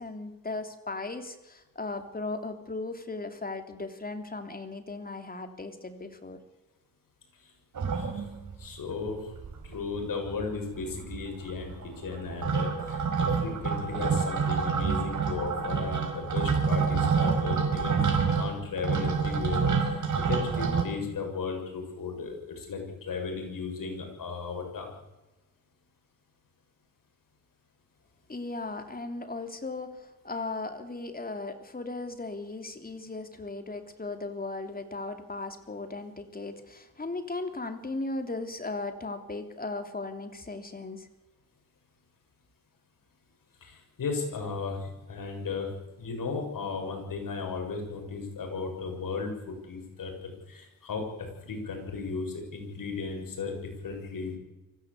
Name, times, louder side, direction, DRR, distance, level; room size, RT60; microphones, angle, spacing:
voice 1, 0.0-6.4 28.3-41.1, left 3 dB, 25° left, 7 dB, 3.1 m, -37 dB
sound 1, 7.8-8.7 9.1-9.2 9.3-10.0 10.3-20.8, right 5 dB, 60° right, 5.0 m, -28 dB
voice 2, 7.9-8.2 8.6-9.3 9.6-18.0 18.3-19.7 20.2-24.9 43.6-45.7 46.0-54.4, left 4 dB, 70° left, 3 dB, 7.0 m, -35 dB
24.5 x 15.5 x 8.3 m, 1.0 s
cardioid pair, 100°, 35 cm